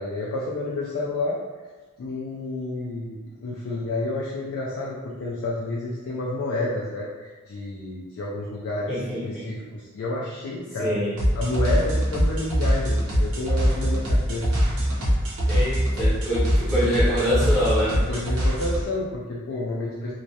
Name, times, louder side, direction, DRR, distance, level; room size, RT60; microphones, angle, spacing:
voice 1, 0.0-1.4 2.0-11.0 11.3-14.5 18.1-20.1, left 2 dB, 70° left, -5 dB, 0.3 m, -30 dB
voice 2, 8.9-9.4 10.8-11.1 15.5-18.0, equal, 5° left, -12 dB, 0.7 m, -25 dB
sound 1, 11.2-18.8, equal, 80° right, 0.6 m, -23 dB
2.2 x 2.1 x 2.7 m, 1.3 s
head